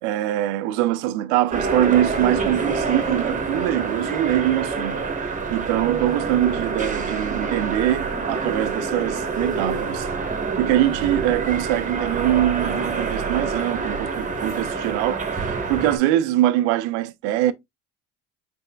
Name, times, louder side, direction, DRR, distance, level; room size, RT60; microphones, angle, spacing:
voice 1, 0.0-5.0 5.5-10.1 10.5-17.5, right 13 dB, 85° right, 0.5 m, -23 dB
sound 1, 1.5-16.0, right 4 dB, 20° right, 1.1 m, -26 dB
4.3 x 4.0 x 2.2 m
supercardioid pair, 80°, 33 cm